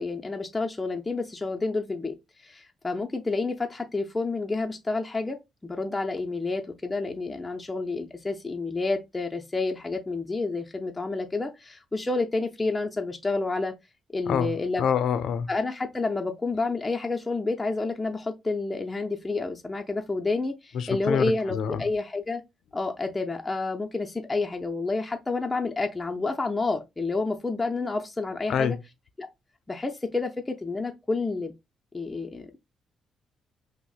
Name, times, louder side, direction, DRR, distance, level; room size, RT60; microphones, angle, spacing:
voice 1, 0.0-2.2 2.4-13.7 14.1-14.8 15.5-22.4 22.7-28.8 29.2-29.3 29.7-31.5 31.9-32.6, left 3 dB, 15° left, 0.5 m, -29 dB
voice 2, 14.8-15.5 20.7-21.8 28.5-28.8, left 7 dB, 70° left, 0.5 m, -26 dB
5.8 x 2.0 x 2.3 m
cardioid pair, 90°, 0 cm